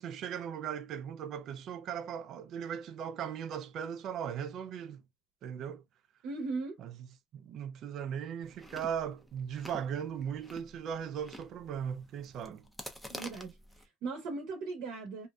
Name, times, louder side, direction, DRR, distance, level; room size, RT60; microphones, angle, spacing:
voice 1, 0.0-5.0 5.4-5.8 6.8-6.9 7.3-12.6, right 8 dB, 50° right, 0.4 m, -38 dB
voice 2, 6.2-6.8 13.1-15.3, right 3 dB, 70° right, 0.8 m, -38 dB
Chewing mastication, 8.4-13.9, equal, ahead, 0.5 m, -49 dB
2.5 x 2.2 x 2.3 m
cardioid pair, 125°, 0 cm